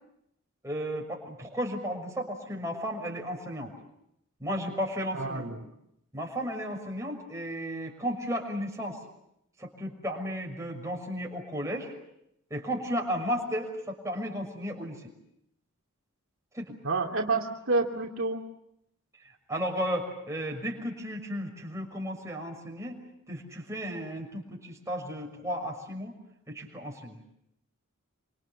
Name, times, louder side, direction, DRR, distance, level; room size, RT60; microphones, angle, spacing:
voice 1, 0.6-3.7 4.4-5.5 6.1-9.0 9.6-11.9 12.5-15.1 16.5-16.8 19.5-23.0 23.3-26.1 26.5-27.2, equal, 15° right, 1 dB, 6.2 m, -34 dB
voice 2, 5.1-5.6 16.8-18.4, right 3 dB, 60° right, 0 dB, 2.8 m, -29 dB
27.5 x 26.0 x 7.3 m, 0.79 s
head